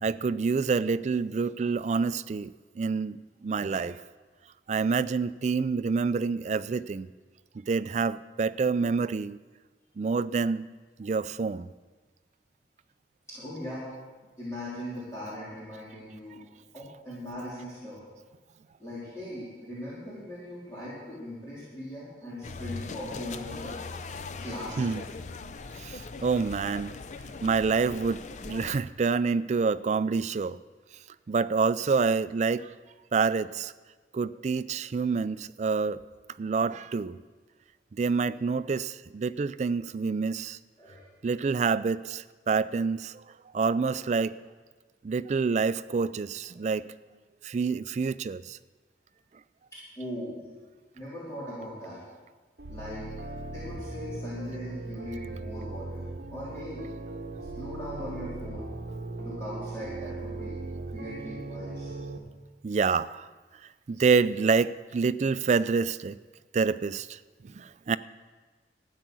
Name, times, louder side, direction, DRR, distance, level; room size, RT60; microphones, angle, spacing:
voice 1, 0.0-4.0 4.7-7.1 7.7-9.4 10.0-10.7 11.0-11.7 24.8-25.0 25.8-26.9 27.4-30.6 31.3-32.7 33.1-33.7 34.1-36.0 36.4-37.2 38.0-40.6 41.2-43.2 43.5-44.3 45.0-46.9 47.4-48.6 62.6-63.3 63.9-66.2 66.5-67.2 67.4-68.0, right 5 dB, 40° right, 15 dB, 0.3 m, -27 dB
voice 2, 13.3-13.9 14.4-16.4 16.7-18.0 18.8-23.8 24.4-24.9 40.8-41.0 43.9-44.0 49.7-50.4 50.9-52.0 52.7-56.8 57.5-58.7 59.2-60.6 60.9-61.9, left 1 dB, 15° left, -10 dB, 3.4 m, -40 dB
sound 1, 22.4-28.8, left 4 dB, 40° left, 0.5 m, -40 dB
sound 2, 52.6-62.2, right 2 dB, 60° right, 1.0 m, -38 dB
13.0 x 9.2 x 6.2 m, 1.3 s
head